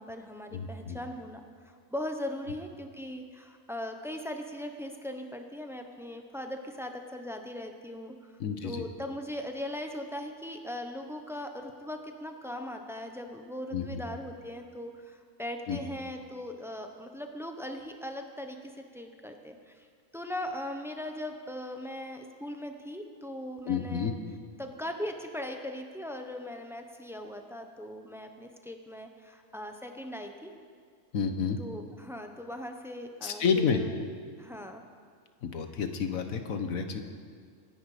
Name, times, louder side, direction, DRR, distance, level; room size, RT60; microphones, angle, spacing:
voice 1, 0.0-8.3 8.6-19.9 20.1-24.1 24.6-30.5 31.6-34.0 34.4-34.8, left 1 dB, ahead, 4 dB, 0.8 m, -39 dB
voice 2, 0.5-1.0 8.4-8.8 13.7-14.0 15.7-15.8 23.7-24.1 31.1-31.6 33.2-33.8 35.4-37.0, left 6 dB, 65° left, 7 dB, 1.5 m, -30 dB
25.0 x 10.0 x 5.1 m, 2.1 s
omnidirectional pair, 1.6 m